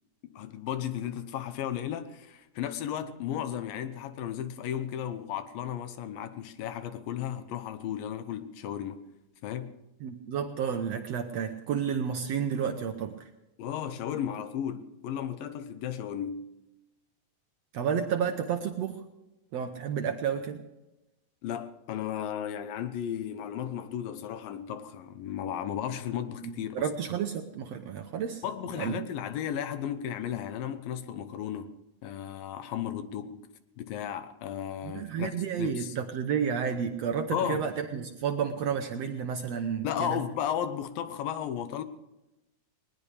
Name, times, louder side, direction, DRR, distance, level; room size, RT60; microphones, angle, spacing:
voice 1, 0.2-9.1 9.4-9.7 13.6-16.5 21.4-26.9 28.4-31.7 32.0-33.4 33.8-35.9 37.3-37.7 39.8-41.8, left 9 dB, 80° left, 2.6 m, -34 dB
voice 2, 10.0-13.2 17.7-19.0 19.5-20.6 26.4-28.4 28.8-29.0 34.8-40.2, right 7 dB, 75° right, 1.5 m, -31 dB
20.5 x 20.0 x 3.4 m
omnidirectional pair, 4.1 m